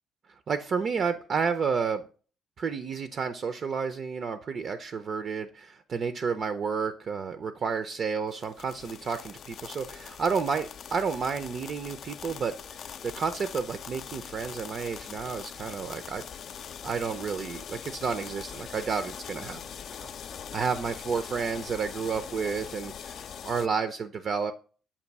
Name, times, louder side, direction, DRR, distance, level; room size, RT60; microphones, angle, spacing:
voice 1, 0.5-2.1 2.6-16.2 16.8-19.6 20.0-20.1 20.5-23.2 23.4-24.5, right 5 dB, 45° right, 10 dB, 0.4 m, -31 dB
Thonk propanefire, 8.3-23.7, left 8 dB, 50° left, 0.3 m, -42 dB
7.1 x 2.6 x 5.2 m, 0.38 s
cardioid pair, 125°, 0 cm